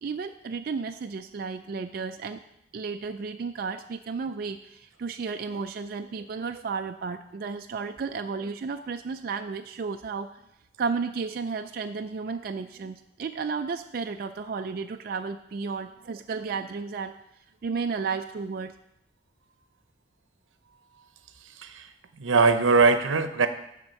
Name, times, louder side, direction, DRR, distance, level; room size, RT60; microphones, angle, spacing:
voice 1, 0.0-2.4 2.7-10.4 10.8-17.1 17.6-18.7, right 5 dB, 50° right, 6 dB, 0.3 m, -33 dB
voice 2, 21.4-23.5, right 4 dB, 90° right, 10 dB, 0.7 m, -22 dB
10.5 x 3.6 x 6.4 m, 0.80 s
head